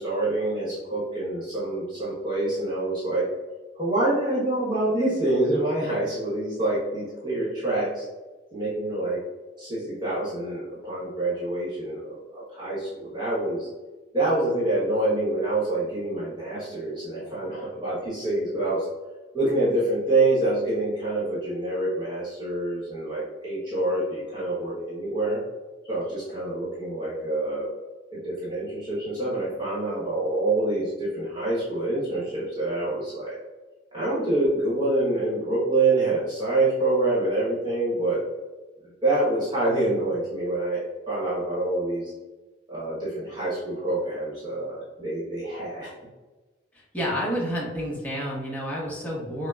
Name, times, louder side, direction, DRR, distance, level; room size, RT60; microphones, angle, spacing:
voice 1, 0.0-3.3 3.8-8.0 8.5-9.2 9.6-13.7 14.1-18.9 19.3-25.4 25.9-27.7 28.1-33.4 33.9-38.2 39.0-42.1 42.7-45.9, right 2 dB, 25° right, -9 dB, 1.1 m, -26 dB
voice 2, 46.7-49.5, equal, 10° left, -5 dB, 0.9 m, -30 dB
5.6 x 2.1 x 2.4 m, 1.2 s
head